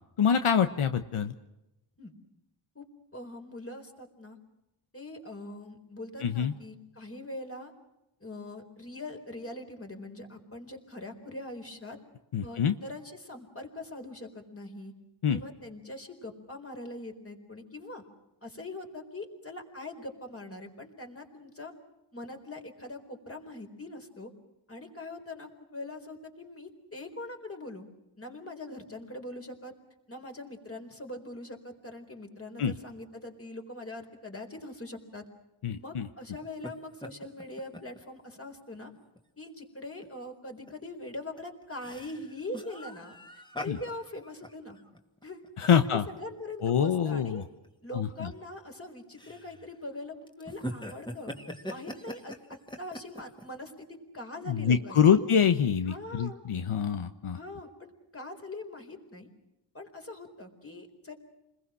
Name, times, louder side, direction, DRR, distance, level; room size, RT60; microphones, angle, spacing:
voice 1, 0.2-1.3 6.2-6.5 12.3-12.7 15.2-15.4 32.6-32.7 35.6-36.1 43.7-43.8 45.6-46.0 46.6-47.4 47.9-48.3 54.5-57.4, left 7 dB, 80° left, 8 dB, 1.2 m, -25 dB
voice 2, 3.1-4.4 4.9-7.7 8.2-12.0 12.4-14.9 15.3-18.0 18.4-21.7 22.1-24.3 24.7-27.8 28.2-29.7 30.1-35.2 35.7-38.9 39.4-43.2 43.6-44.8 45.2-45.4 45.8-47.5 47.8-51.3 51.7-55.2 55.9-56.4 57.3-59.3 59.7-61.2, left 2 dB, 25° left, 4 dB, 4.3 m, -42 dB
sound 1, 36.4-36.7 37.0-38.0 38.4-38.5 38.9-39.2 40.0-40.1 40.5-40.7 41.1-46.2 46.6-46.7 47.4-47.7 48.3-48.8 49.2-49.8 50.3-53.4, equal, 10° left, 2.4 m, -42 dB
30.0 x 21.0 x 6.4 m, 0.93 s
wide cardioid pair, 100°, 50 cm